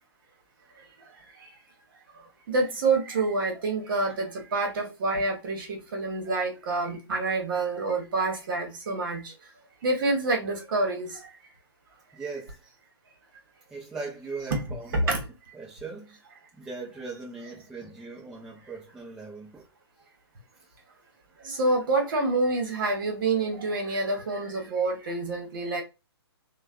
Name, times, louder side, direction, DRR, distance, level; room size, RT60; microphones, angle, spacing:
voice 1, 2.5-9.2 9.8-11.1 14.5-14.6 14.9-15.2 21.4-25.8, right 3 dB, 50° right, 1.1 m, -27 dB
voice 2, 12.1-12.6 13.7-15.2 15.5-16.1 16.5-19.7 21.5-21.6, right 4 dB, 5° right, 0.5 m, -39 dB
3.2 x 2.2 x 2.4 m
hypercardioid pair, 145°, 14 cm